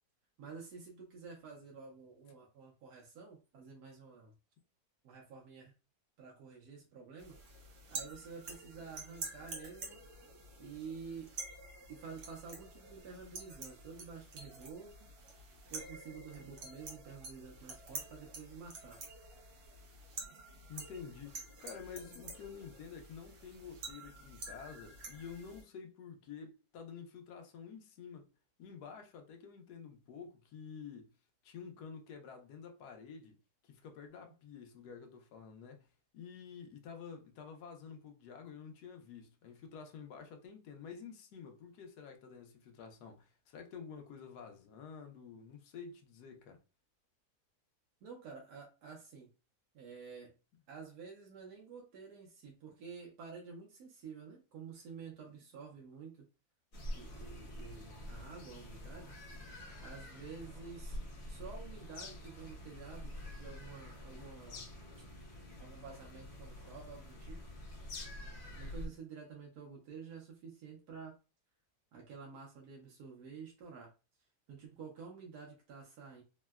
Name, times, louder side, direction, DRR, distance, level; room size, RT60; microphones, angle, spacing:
voice 1, 0.4-4.3 5.0-5.7 6.2-7.6 7.9-10.0 10.6-11.3 11.9-15.1 15.7-19.0 48.0-49.3 49.7-50.3 50.7-56.3 56.9-59.2 59.8-61.0 61.3-64.7 65.0-65.1 65.6-67.4 68.5-71.2 71.9-73.9 74.5-76.2, right 5 dB, 75° right, 1.2 m, -50 dB
sound 1, 7.2-25.6, right 3 dB, 60° right, 1.0 m, -49 dB
voice 2, 20.7-28.3 28.6-31.1 31.4-33.4 33.6-35.9 36.1-46.6, left 6 dB, 85° left, 1.2 m, -50 dB
sound 2, 56.7-68.9, left 1 dB, 50° left, 0.9 m, -47 dB
3.6 x 2.1 x 2.3 m
omnidirectional pair, 1.7 m